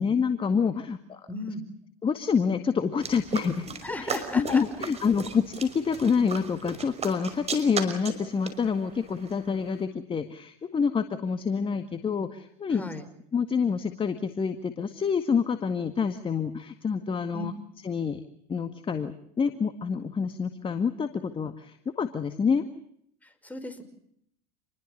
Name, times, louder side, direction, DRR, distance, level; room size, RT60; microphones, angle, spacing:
voice 1, 0.0-1.2 2.0-12.9 13.3-17.5 17.8-18.2 18.5-22.6, left 6 dB, 25° left, 8 dB, 1.9 m, -27 dB
voice 2, 1.3-1.6 3.8-4.6 12.7-13.1 17.3-17.5 23.2-23.8, left 1 dB, 5° left, 7 dB, 5.6 m, -35 dB
sound 1, 3.0-9.8, right 5 dB, 30° right, 5.6 m, -37 dB
28.5 x 21.5 x 6.7 m, 0.70 s
hypercardioid pair, 95°, 21 cm